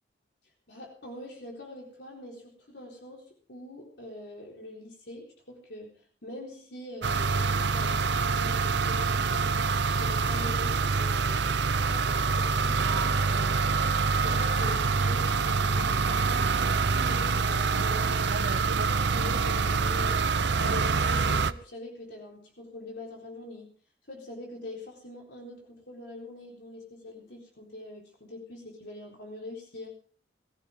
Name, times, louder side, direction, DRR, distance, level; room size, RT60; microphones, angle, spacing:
voice 1, 0.7-11.5 11.9-13.7 14.2-23.7 24.1-29.9, left 1 dB, 65° left, -1 dB, 4.1 m, -43 dB
sound 1, 7.0-21.5, right 4 dB, 70° right, 0.7 m, -26 dB
20.5 x 14.0 x 3.6 m, 0.43 s
head